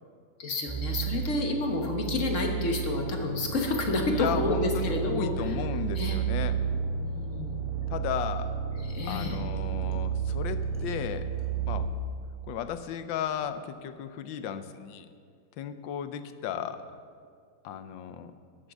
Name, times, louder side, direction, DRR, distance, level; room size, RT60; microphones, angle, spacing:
voice 1, 0.4-5.5 5.9-6.2 6.9-7.6 8.8-9.4, left 2 dB, 45° left, 2 dB, 1.6 m, -30 dB
sound 1, 0.7-11.9, right 8 dB, 15° right, 1.2 m, -32 dB
voice 2, 4.1-6.5 7.9-8.6 9.0-11.3 11.7-11.9 12.5-15.1 15.6-16.8 17.6-18.3, left 9 dB, 85° left, 10 dB, 1.4 m, -34 dB
12.0 x 7.6 x 7.1 m, 2.2 s
omnidirectional pair, 2.0 m